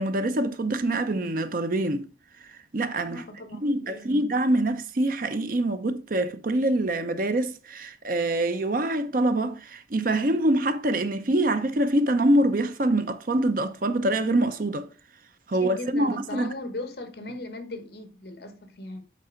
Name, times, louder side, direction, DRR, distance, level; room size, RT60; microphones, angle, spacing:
voice 1, 0.0-2.1 2.7-3.2 3.6-14.9 15.5-16.5, right 1 dB, 50° right, 0.6 m, -25 dB
voice 2, 3.0-4.2 15.6-19.0, left 1 dB, 65° left, 1.2 m, -38 dB
8.3 x 3.5 x 5.0 m
head